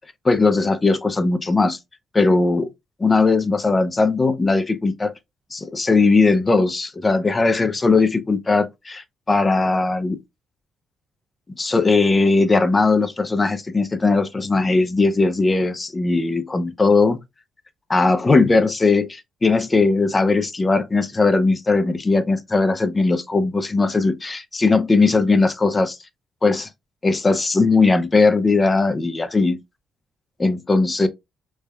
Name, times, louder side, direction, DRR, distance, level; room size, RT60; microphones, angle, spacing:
voice 1, 0.2-1.8 2.1-2.7 3.0-5.1 5.5-10.2 11.6-17.2 17.9-26.0 26.4-26.7 27.0-29.6 30.4-31.1, left 3 dB, 25° left, 0.4 m, -19 dB
3.2 x 2.1 x 2.2 m
cardioid pair, 90°, 0 cm